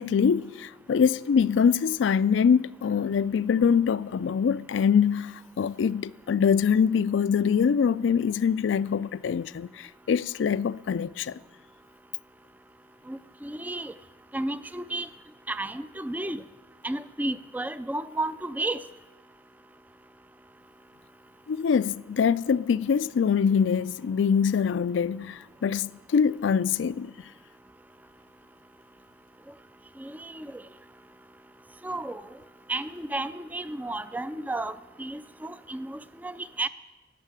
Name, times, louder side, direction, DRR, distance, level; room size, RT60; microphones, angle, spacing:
voice 1, 0.0-11.4 21.5-27.1, left 6 dB, 85° left, 0.3 m, -24 dB
voice 2, 13.1-13.9 14.3-15.1 15.5-16.4 16.8-18.8 30.0-30.6 31.8-32.2 32.7-36.7, right 2 dB, 10° right, 0.3 m, -33 dB
12.0 x 8.2 x 8.8 m
head